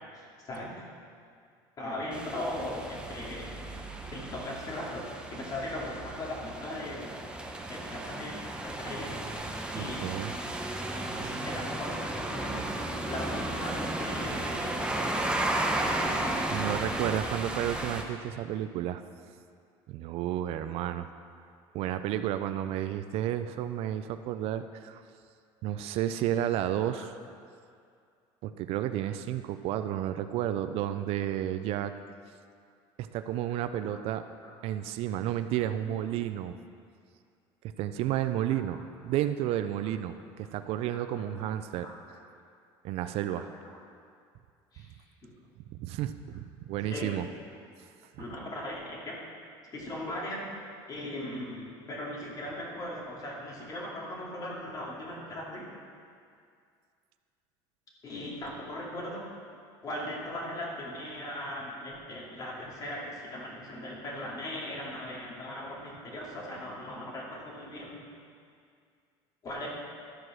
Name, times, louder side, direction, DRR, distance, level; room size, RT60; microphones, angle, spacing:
voice 1, 0.1-0.7 1.8-3.6 4.1-7.2 7.7-9.2 9.7-10.0 11.2-12.6 13.1-15.4 26.8-27.1 33.9-34.0 34.4-34.5 38.5-38.6 39.8-39.9 41.8-41.9 43.5-43.6 44.7-44.9 46.9-47.2 48.2-49.2 49.7-50.5 50.9-55.7 58.0-59.3 59.8-68.0 69.4-69.7, left 1 dB, 35° left, -4 dB, 2.5 m, -38 dB
sound 1, 2.1-18.0, right 1 dB, 10° right, 0.9 m, -34 dB
voice 2, 9.7-10.3 16.5-19.0 19.9-21.1 21.7-25.0 25.6-27.2 28.4-31.9 33.0-34.2 34.6-36.6 37.8-41.9 42.8-43.5 45.7-47.3 48.2-48.3, right 11 dB, 60° right, 10 dB, 0.4 m, -32 dB
13.0 x 4.8 x 6.1 m, 2.3 s
cardioid pair, 125°, 11 cm